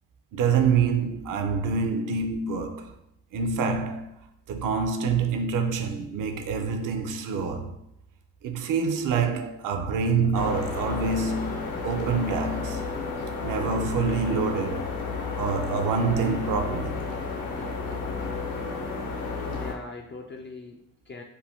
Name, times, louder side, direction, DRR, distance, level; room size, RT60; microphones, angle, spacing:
voice 1, 0.3-2.9 3.3-4.1 4.5-7.8 8.4-12.8 13.4-14.9 15.4-17.1, right 5 dB, 55° right, 0.5 m, -26 dB
sound 1, 10.3-19.7, left 4 dB, 60° left, 0.8 m, -32 dB
voice 2, 19.4-21.2, left 3 dB, 30° left, 0.4 m, -41 dB
2.6 x 2.1 x 3.4 m
supercardioid pair, 70°, 37 cm